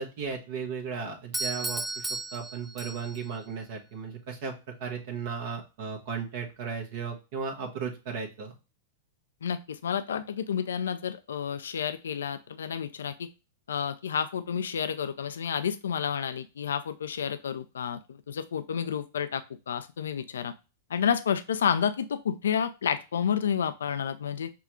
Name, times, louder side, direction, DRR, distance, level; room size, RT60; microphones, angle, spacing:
voice 1, 0.0-8.5, right 5 dB, 60° right, 1 dB, 1.1 m, -36 dB
Doorbell, 1.3-3.3, right 2 dB, 10° right, 0.5 m, -34 dB
voice 2, 9.4-13.3 13.7-20.5 20.9-24.5, left 7 dB, 80° left, 11 dB, 0.4 m, -30 dB
5.9 x 2.3 x 2.9 m, 0.29 s
hypercardioid pair, 105°, 0 cm